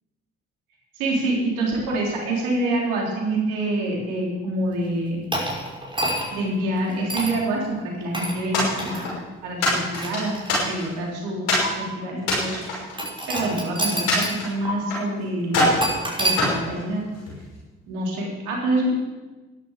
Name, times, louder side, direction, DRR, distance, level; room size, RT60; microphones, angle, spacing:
voice 1, 0.9-5.2 6.3-9.2 9.4-12.8 13.3-15.7 16.1-17.0 17.9-18.9, right 1 dB, 85° right, -2 dB, 3.8 m, -26 dB
sound 1, 5.3-6.5 7.1-7.4 8.1-8.4 8.8-9.0 9.7-10.8 11.6-11.7 13.0-14.4 14.7-14.8 15.8-16.4, right 1 dB, 15° right, 5.9 m, -27 dB
sound 2, 8.5-9.2 9.6-11.0 11.5-11.7 12.2-13.5 14.1-15.1 15.5-15.9 16.4-17.4, left 1 dB, 85° left, 5.9 m, -24 dB
13.0 x 11.0 x 6.6 m, 1.2 s
hypercardioid pair, 45°, 31 cm